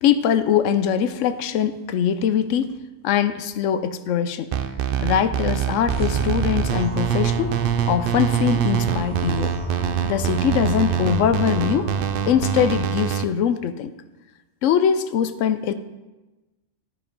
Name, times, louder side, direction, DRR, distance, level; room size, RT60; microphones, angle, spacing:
voice 1, 0.0-2.7 3.0-4.5 5.0-7.6 7.9-9.5 10.0-11.9 12.3-13.9 14.6-15.7, left 8 dB, 90° left, 12 dB, 1.0 m, -22 dB
sound 1, 4.5-13.2, right 9 dB, 60° right, 0.6 m, -24 dB
sound 2, 5.9-12.8, right 1 dB, 10° left, 1.9 m, -33 dB
13.5 x 4.8 x 5.3 m, 1.1 s
omnidirectional pair, 1.3 m